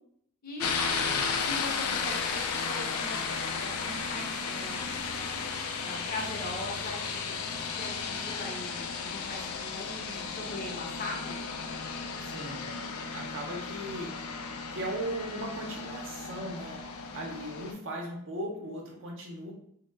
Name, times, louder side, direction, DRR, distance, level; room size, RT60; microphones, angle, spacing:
sound 1, 0.6-17.7, left 5 dB, 85° left, 0.4 m, -34 dB
voice 1, 0.9-1.6 12.2-12.7 13.1-14.4 14.7-19.5, right 1 dB, 60° right, 0 dB, 0.6 m, -38 dB
voice 2, 1.5-3.2 3.6-5.0 5.8-11.4, left 2 dB, 45° left, 0 dB, 0.6 m, -40 dB
2.1 x 2.0 x 3.1 m, 0.70 s
head